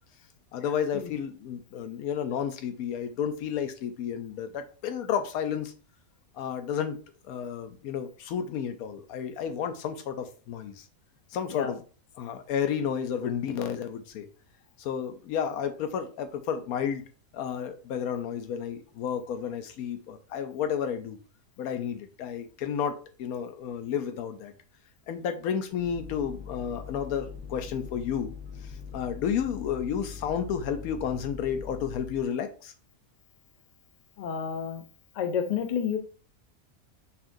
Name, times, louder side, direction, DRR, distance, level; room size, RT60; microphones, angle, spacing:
voice 1, 0.5-5.7 6.3-7.0 7.3-10.8 11.3-11.8 12.2-14.3 14.8-17.0 17.3-21.2 21.6-24.5 25.1-28.3 28.9-32.7, left 8 dB, 90° left, 8 dB, 1.1 m, -31 dB
sound 1, 25.7-32.3, left 6 dB, 15° right, 0.6 m, -42 dB
voice 2, 34.2-34.8 35.2-36.0, left 7 dB, 60° left, 7 dB, 0.4 m, -30 dB
5.5 x 2.5 x 2.5 m, 0.37 s
omnidirectional pair, 1.5 m